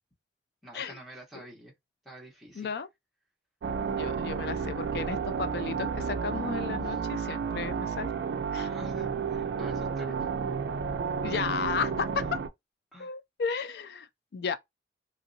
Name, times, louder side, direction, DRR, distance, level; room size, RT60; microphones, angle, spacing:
voice 1, 0.6-1.7 2.0-2.7 6.8-7.0 8.5-10.3 12.1-12.2 12.9-13.1, right 1 dB, ahead, 1.1 m, -48 dB
voice 2, 2.5-2.9 3.8-8.1 8.5-8.7 11.2-12.1 13.0-14.6, left 5 dB, 60° left, 0.4 m, -34 dB
sound 1, 3.6-12.5, right 6 dB, 75° right, 0.3 m, -32 dB
3.0 x 2.7 x 2.7 m
head